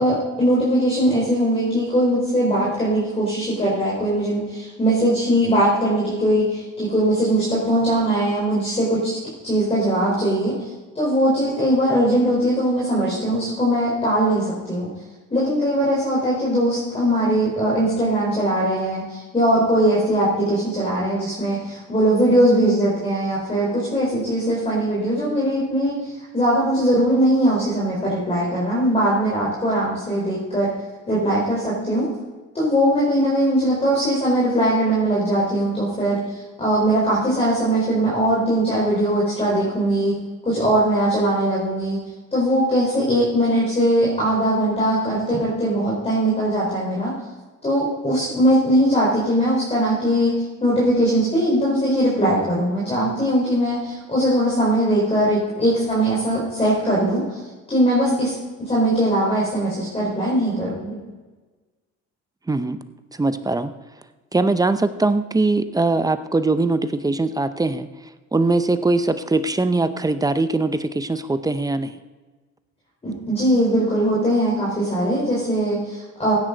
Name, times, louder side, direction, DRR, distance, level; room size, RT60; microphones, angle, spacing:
voice 1, 0.0-9.1 9.4-10.5 10.9-14.9 15.3-26.0 26.3-30.7 31.1-32.1 32.5-36.2 36.6-40.1 40.4-42.0 42.3-47.1 47.6-57.4 57.7-58.3 58.6-60.9 73.0-76.4, right 1 dB, 20° left, -5 dB, 4.5 m, -20 dB
voice 2, 62.5-62.8 63.2-63.7 64.3-67.9 68.3-71.9, right 3 dB, 15° right, 11 dB, 0.6 m, -21 dB
15.5 x 10.0 x 4.0 m, 1.3 s
cardioid pair, 115°, 29 cm